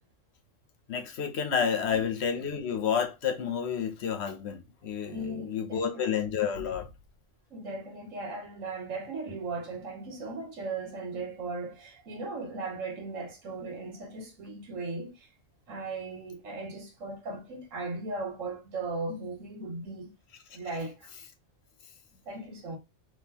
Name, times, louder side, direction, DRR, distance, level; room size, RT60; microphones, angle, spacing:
voice 1, 0.9-6.9, left 7 dB, 65° left, 1.0 m, -30 dB
voice 2, 5.1-6.0 7.5-15.3 15.7-20.1 20.5-21.1 22.3-22.8, right 3 dB, 85° right, 1.5 m, -37 dB
3.7 x 3.0 x 2.9 m
omnidirectional pair, 1.3 m